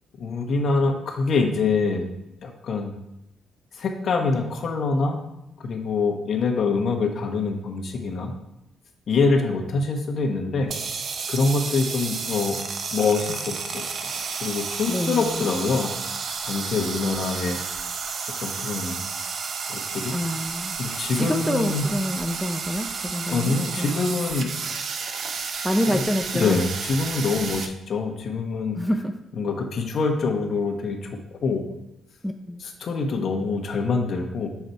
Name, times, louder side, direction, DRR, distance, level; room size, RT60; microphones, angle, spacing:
voice 1, 0.2-2.0 2.4-2.9 3.8-5.2 5.6-8.3 9.1-10.7 11.3-12.6 12.9-13.8 14.4-15.9 16.4-17.6 18.4-19.0 19.7-20.1 20.8-21.8 23.3-24.5 26.3-28.8 29.4-31.1 31.4-31.6 32.8-34.5, left 4 dB, 55° left, 2 dB, 1.1 m, -25 dB
sound 1, 10.6-27.7, right 5 dB, 55° right, 0.6 m, -31 dB
voice 2, 14.9-15.6 20.1-24.1 25.6-26.6 28.7-29.1 32.2-32.6, equal, ahead, 5 dB, 0.5 m, -27 dB
7.1 x 4.0 x 4.6 m, 0.88 s
cardioid pair, 90°, 0 cm